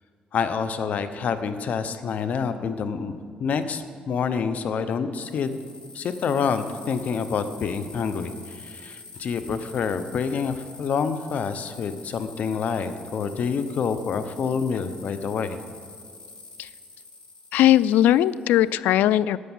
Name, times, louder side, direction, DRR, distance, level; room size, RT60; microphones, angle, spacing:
voice 1, 0.3-5.6 5.9-15.6, left 6 dB, 60° left, 10 dB, 0.8 m, -27 dB
sound 1, 5.1-18.7, left 3 dB, 35° left, 2.7 m, -46 dB
voice 2, 17.5-19.4, left 12 dB, 90° left, 19 dB, 0.3 m, -19 dB
13.0 x 9.2 x 7.3 m, 2.2 s
cardioid pair, 105°, 3 cm